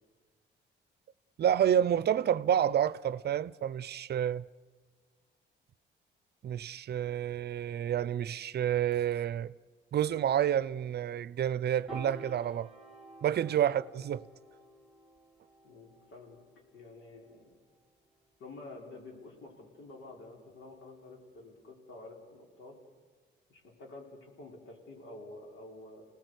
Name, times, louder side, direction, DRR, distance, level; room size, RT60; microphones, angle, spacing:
voice 1, 1.4-4.5 6.4-9.5 9.9-12.7 13.2-14.2, right 10 dB, 55° right, 0.6 m, -29 dB
Piano, 11.9-18.3, right 1 dB, ahead, 3.7 m, -51 dB
voice 2, 15.6-16.4 16.7-17.6 18.4-22.8 23.5-26.1, left 2 dB, 75° left, 5.1 m, -49 dB
28.5 x 19.0 x 8.2 m
cardioid pair, 90°, 20 cm